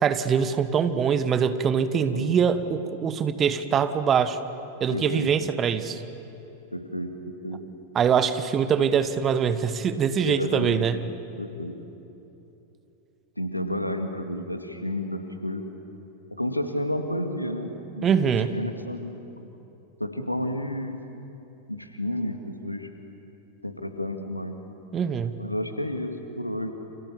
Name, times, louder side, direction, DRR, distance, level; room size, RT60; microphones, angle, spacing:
voice 1, 0.0-4.4 4.8-6.0 7.9-11.0 18.0-18.5 24.9-25.4, right 7 dB, 25° right, 12 dB, 1.4 m, -23 dB
voice 2, 4.9-5.3 6.7-7.6 10.2-10.8 11.4-11.7 13.4-15.7 16.3-18.1 18.4-19.5 20.0-21.2 21.7-22.9 23.6-24.5 25.4-26.7, left 1 dB, 90° left, 6 dB, 2.1 m, -31 dB
29.5 x 27.5 x 7.2 m, 2.9 s
figure-of-eight pair, 90°, 0 cm